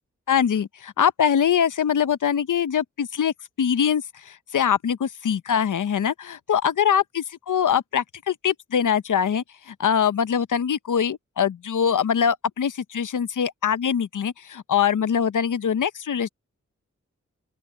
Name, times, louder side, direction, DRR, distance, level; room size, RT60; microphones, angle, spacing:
voice 1, 0.3-16.3, left 8 dB, 90° left, 0.7 m, -23 dB
open air
wide cardioid pair, 70°, 30 cm